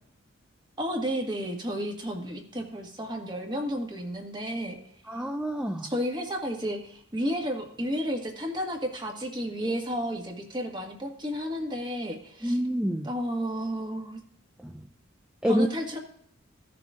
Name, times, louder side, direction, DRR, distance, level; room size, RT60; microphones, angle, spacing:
voice 1, 0.8-4.8 5.8-12.6 13.0-14.2 15.5-16.0, equal, 20° right, 1 dB, 1.7 m, -32 dB
voice 2, 5.1-5.9 12.4-13.1 14.6-14.9 15.4-15.7, equal, 5° right, 3 dB, 0.5 m, -27 dB
16.0 x 6.8 x 2.4 m, 0.70 s
head